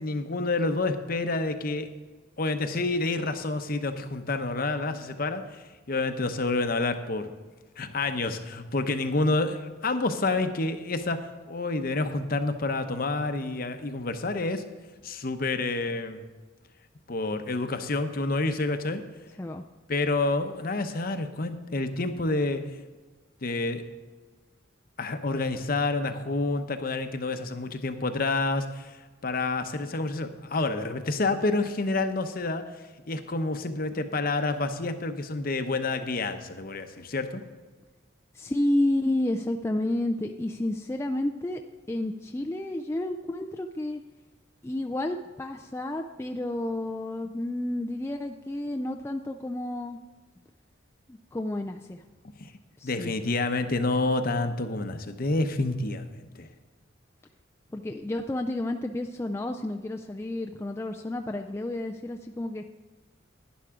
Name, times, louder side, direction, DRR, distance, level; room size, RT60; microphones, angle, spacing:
voice 1, 0.0-1.9 2.4-5.4 5.9-7.3 7.8-14.6 15.0-16.2 17.1-19.0 19.9-22.6 23.4-23.8 25.0-32.7 33.1-37.4 52.4-52.5 52.8-56.5, left 2 dB, 45° left, 8 dB, 0.8 m, -28 dB
voice 2, 38.3-41.6 41.9-44.0 44.6-50.0 51.1-52.0 52.8-53.1 57.7-62.6, left 1 dB, 15° left, 3 dB, 0.3 m, -30 dB
11.5 x 10.5 x 3.7 m, 1.3 s
head